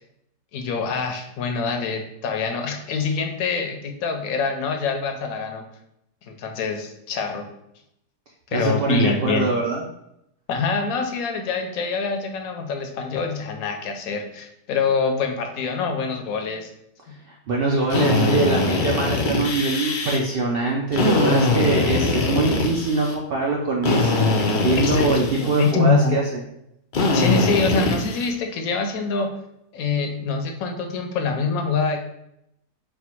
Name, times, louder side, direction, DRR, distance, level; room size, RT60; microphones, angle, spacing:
voice 1, 0.5-5.6 6.2-7.5 8.5-9.5 10.5-16.7 17.1-17.2 24.8-25.1 25.4-26.2 27.1-29.3 29.7-32.0, left 4 dB, 70° left, 5 dB, 1.0 m, -25 dB
voice 2, 8.5-9.8 17.3-26.4, right 3 dB, 75° right, -1 dB, 0.5 m, -23 dB
Drill, 17.9-20.2 20.9-23.1 23.8-25.7 26.9-28.3, left 3 dB, 85° left, 0.4 m, -22 dB
4.4 x 2.2 x 4.3 m, 0.79 s
omnidirectional pair, 1.7 m